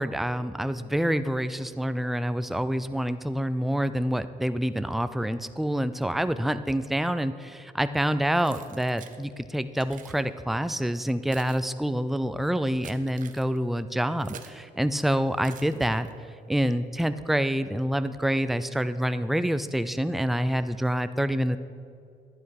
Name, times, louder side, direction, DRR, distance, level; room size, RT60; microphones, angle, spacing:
voice 1, 0.0-16.1 16.5-21.6, equal, ahead, 12 dB, 0.4 m, -27 dB
Keys jangling, 8.4-9.2 9.7-10.2 10.9-14.6 15.4-16.3, right 8 dB, 50° right, 0.8 m, -49 dB
11.0 x 9.5 x 4.7 m, 2.3 s
cardioid pair, 110°, 17 cm